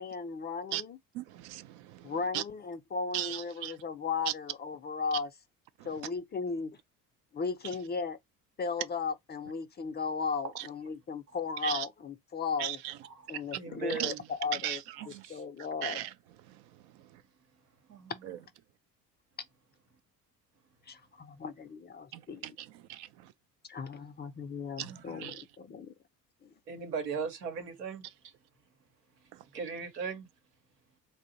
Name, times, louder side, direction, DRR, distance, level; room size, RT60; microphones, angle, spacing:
voice 1, 0.0-1.0 2.0-5.3 5.8-6.8 7.3-8.2 8.6-12.8 13.3-14.8 15.3-16.0 18.1-18.2 20.8-22.5 23.7-25.9 26.4-26.5, left 5 dB, 20° left, 0.5 m, -36 dB
voice 2, 1.1-2.4 3.1-3.7 4.3-4.4 11.6-11.9 12.6-12.9 14.0-14.1 14.5-15.3 15.8-16.1 16.5-17.2 18.2-18.4 22.1-23.3 24.8-25.4 29.3-29.4, right 13 dB, 60° right, 0.5 m, -38 dB
voice 3, 13.1-14.2 15.2-15.4 17.9-18.1 24.8-25.2 26.7-28.1 29.2-30.3, right 5 dB, 85° right, 1.0 m, -39 dB
2.7 x 2.0 x 3.8 m
hypercardioid pair, 65°, 47 cm